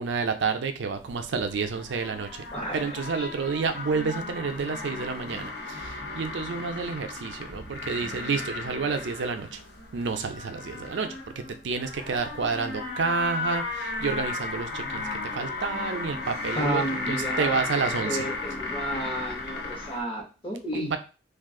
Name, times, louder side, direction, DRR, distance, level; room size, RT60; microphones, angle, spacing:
voice 1, 0.0-2.4 2.7-9.6 9.9-15.1 15.3-18.3 20.7-21.0, right 5 dB, 75° right, 7 dB, 0.4 m, -30 dB
sound 1, 1.0-20.0, left 3 dB, 60° left, 0.7 m, -35 dB
voice 2, 2.5-2.8 3.2-3.3 16.5-17.6 18.0-21.0, right 1 dB, 30° left, 0 dB, 0.9 m, -31 dB
2.5 x 2.3 x 3.6 m, 0.34 s
head